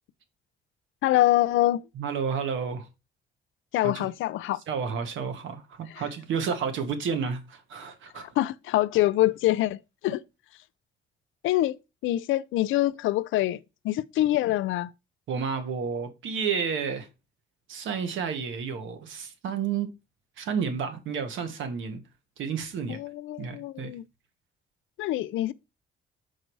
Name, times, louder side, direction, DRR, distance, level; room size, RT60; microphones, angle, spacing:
voice 1, 1.0-1.9 3.7-4.6 8.2-10.2 11.4-11.8 12.0-13.6 13.8-14.9 22.9-24.0 25.0-25.5, left 15 dB, 85° left, 0.5 m, -25 dB
voice 2, 1.9-2.9 3.8-4.1 4.7-8.3 15.3-17.1 17.7-19.9 20.4-22.0 22.4-23.0 23.4-23.9, right 6 dB, 75° right, 1.5 m, -31 dB
6.6 x 4.8 x 4.6 m
cardioid pair, 90°, 20 cm